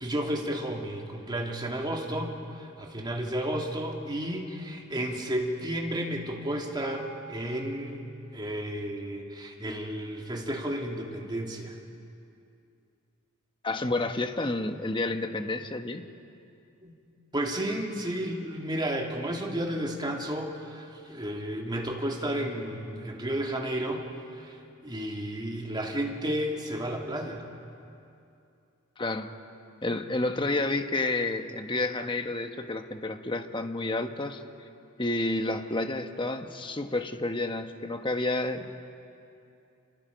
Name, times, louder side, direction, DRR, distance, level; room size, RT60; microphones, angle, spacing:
voice 1, 0.0-11.7 16.8-16.9 17.3-24.0 24.4-24.6 24.8-27.4, right 1 dB, 20° right, 0 dB, 2.6 m, -32 dB
voice 2, 13.6-16.0 29.0-29.3 29.8-34.4 35.0-38.8, left 2 dB, 25° left, 6 dB, 1.3 m, -30 dB
29.5 x 28.5 x 5.3 m, 2.6 s
head